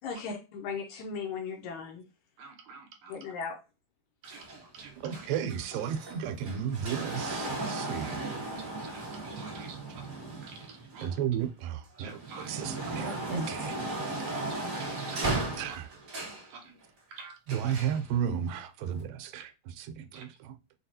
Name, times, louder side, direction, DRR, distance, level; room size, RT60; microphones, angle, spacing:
voice 1, 0.0-2.1 3.1-3.6 13.3-13.5, left 5 dB, 75° left, 1.9 m, -37 dB
voice 2, 2.4-3.3 4.2-5.3 6.8-7.1 8.0-8.1 8.5-10.1 10.4-11.2 12.0-12.5 14.3-15.8 16.5-16.8 17.1-17.4 17.6-17.7 19.4-19.5 20.1-20.3, right 4 dB, 70° right, 2.0 m, -48 dB
sound 1, 4.2-11.4 11.9-16.5 17.5-18.0 18.9-19.0, right 2 dB, 40° right, 1.2 m, -36 dB
voice 3, 5.0-8.2 11.0-12.1 12.4-13.8 15.6-15.8 17.5-19.5 19.8-20.5, right 8 dB, 90° right, 2.4 m, -33 dB
5.8 x 2.3 x 2.7 m
omnidirectional pair, 3.9 m